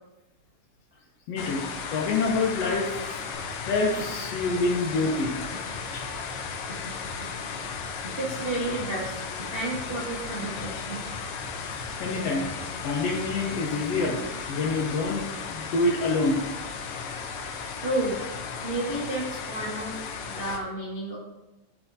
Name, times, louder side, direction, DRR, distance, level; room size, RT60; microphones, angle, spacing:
voice 1, 1.3-1.6 1.9-2.9 3.6-5.4 5.9-6.0 12.0-12.4 12.8-14.2 14.5-16.4, left 3 dB, 70° left, 0 dB, 1.7 m, -26 dB
sound 1, 1.4-20.6, left 5 dB, 90° left, 1.2 m, -35 dB
sound 2, 3.3-14.1, left 1 dB, 50° left, 0.8 m, -43 dB
voice 2, 8.1-11.0 17.8-18.2 18.6-21.2, right 2 dB, 55° right, -7 dB, 0.6 m, -31 dB
11.0 x 4.4 x 2.7 m, 1.0 s
omnidirectional pair, 3.4 m